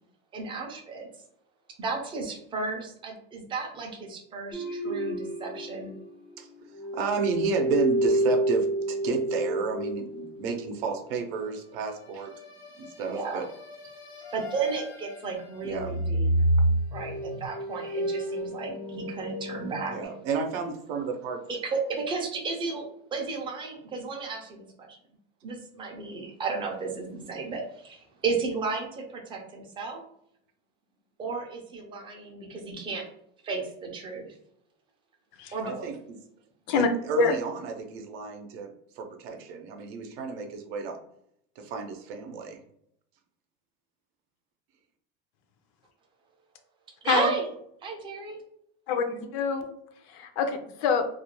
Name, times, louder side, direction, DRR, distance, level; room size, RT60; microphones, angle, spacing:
voice 1, 0.3-1.1 1.8-5.9 13.0-13.4 14.3-16.3 16.9-20.0 21.5-22.9 23.1-24.9 25.4-30.0 31.2-33.0 33.4-34.3 35.5-35.9 47.0-47.5 47.8-48.4, right 4 dB, 15° right, 1 dB, 0.4 m, -33 dB
sound 1, 4.5-6.5 6.7-10.6 12.2-15.4 15.7-20.1, right 1 dB, 80° left, 1.0 m, -29 dB
voice 2, 6.9-12.3 12.8-13.5 15.6-16.0 19.9-21.4 35.6-36.0 36.7-38.7 38.9-41.0 41.6-42.6, right 5 dB, 70° right, 4 dB, 0.6 m, -32 dB
voice 3, 48.9-49.7 50.1-51.1, left 6 dB, 50° left, 6 dB, 0.4 m, -25 dB
2.4 x 2.1 x 2.9 m, 0.71 s
supercardioid pair, 150°, 31 cm